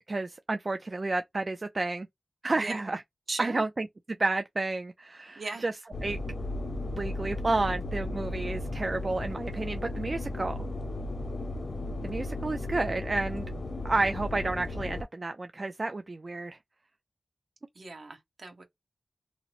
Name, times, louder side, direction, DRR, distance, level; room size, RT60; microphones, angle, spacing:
voice 1, 0.1-2.1 2.4-3.0 3.4-3.9 4.2-5.7 6.0-6.2 6.9-10.6 12.0-13.5 13.8-16.6, right 2 dB, 50° right, 0.3 m, -31 dB
voice 2, 3.3-3.6 5.4-5.6 17.7-18.6, right 3 dB, 75° right, 1.0 m, -37 dB
sound 1, 5.9-15.0, left 2 dB, 65° left, 0.7 m, -35 dB
2.8 x 2.0 x 4.0 m
wide cardioid pair, 65°, 0 cm